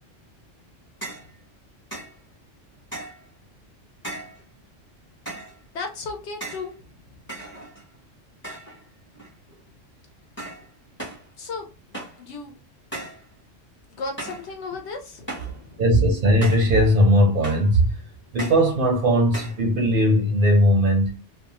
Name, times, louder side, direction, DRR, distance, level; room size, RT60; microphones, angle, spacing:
sound 1, 1.0-1.3 1.9-2.2 2.9-3.3 4.0-4.4 5.2-5.6 6.4-6.7 7.3-7.9 8.4-8.8 9.1-9.6 10.4-10.7 11.0-11.3 11.9-12.2 12.9-13.2 14.2-14.5 15.3-15.6 16.4-16.7 17.4-17.7 18.4-18.7 19.3-19.6, right 2 dB, 10° left, 0.8 m, -36 dB
voice 1, 5.7-6.8 7.1-7.2 11.4-11.7 12.2-12.6 13.9-15.8, left 4 dB, 65° left, 0.9 m, -35 dB
voice 2, 15.8-18.0 18.3-21.2, equal, 55° right, 0.6 m, -19 dB
2.4 x 2.2 x 2.8 m
omnidirectional pair, 1.3 m